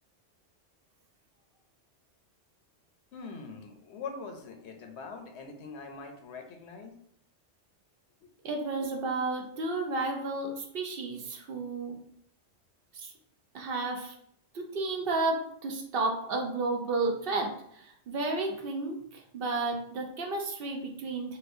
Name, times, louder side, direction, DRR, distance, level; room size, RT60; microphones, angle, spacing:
voice 1, 3.1-7.0 8.2-8.3, left 4 dB, 80° left, 4 dB, 0.9 m, -43 dB
voice 2, 8.4-12.0 12.9-13.1 13.5-14.1 14.5-21.4, right 3 dB, 65° right, 2 dB, 0.7 m, -32 dB
4.1 x 2.3 x 2.5 m, 0.68 s
omnidirectional pair, 1.1 m